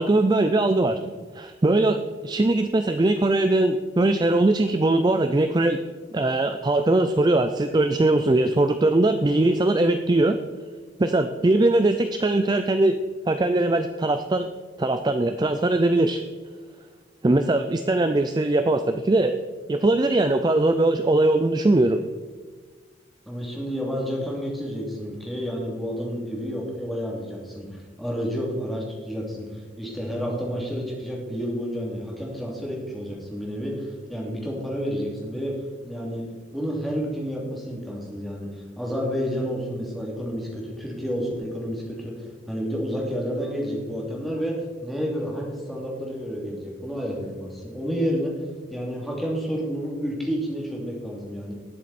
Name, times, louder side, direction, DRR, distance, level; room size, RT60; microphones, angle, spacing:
voice 1, 0.0-5.8 6.1-10.4 11.0-13.0 13.3-14.5 14.8-16.2 17.2-19.4 19.7-22.0, right 2 dB, 20° right, 8 dB, 0.4 m, -21 dB
voice 2, 23.3-35.6 35.8-36.3 36.5-48.3 48.7-51.5, equal, ahead, -3 dB, 2.7 m, -30 dB
18.5 x 7.6 x 4.2 m, 1.5 s
head